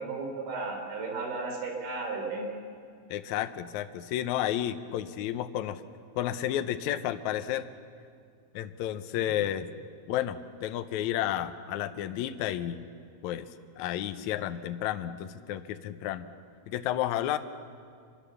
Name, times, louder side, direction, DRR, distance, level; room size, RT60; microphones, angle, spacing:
voice 1, 0.0-2.5, right 3 dB, 80° right, 2 dB, 5.5 m, -34 dB
voice 2, 3.1-5.8 6.1-7.7 8.5-9.7 10.1-12.9 13.2-13.5 13.8-16.3 16.7-17.4, left 12 dB, 85° left, 10 dB, 1.6 m, -31 dB
26.0 x 22.0 x 7.0 m, 2.2 s
omnidirectional pair, 4.4 m